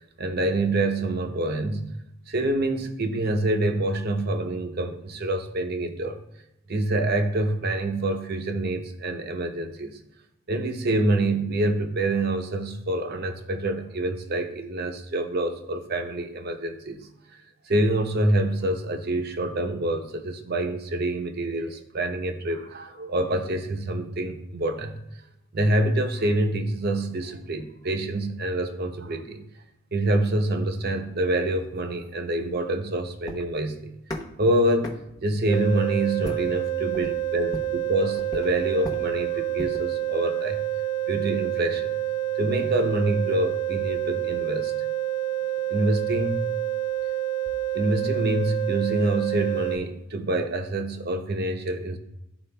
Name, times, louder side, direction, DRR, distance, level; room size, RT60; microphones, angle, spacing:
voice 1, 0.2-1.9 2.3-6.2 6.7-10.0 10.5-17.1 17.7-25.0 25.5-29.4 29.9-33.9 34.4-40.6 41.1-41.9 42.4-44.7 45.7-46.6 47.7-52.0, right 1 dB, 45° right, 7 dB, 0.7 m, -26 dB
sound 1, 31.2-39.9, left 1 dB, 15° left, 0.9 m, -40 dB
sound 2, 35.5-49.8, right 12 dB, 60° left, 0.9 m, -28 dB
12.5 x 4.4 x 2.2 m, 0.84 s
head